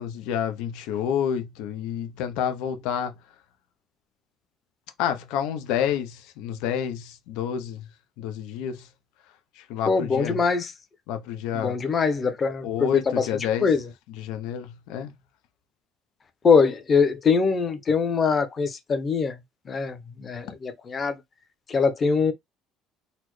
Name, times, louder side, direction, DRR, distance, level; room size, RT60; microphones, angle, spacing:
voice 1, 0.0-3.1 5.0-7.9 8.2-8.9 9.6-10.4 11.1-11.8 12.6-13.7 14.1-15.1, left 9 dB, 90° left, 0.6 m, -29 dB
voice 2, 9.9-10.7 11.5-13.3 13.6-13.8 16.4-19.4 19.7-21.2 21.7-22.3, left 5 dB, 30° left, 0.8 m, -23 dB
4.1 x 2.1 x 3.1 m
cardioid pair, 140°, 0 cm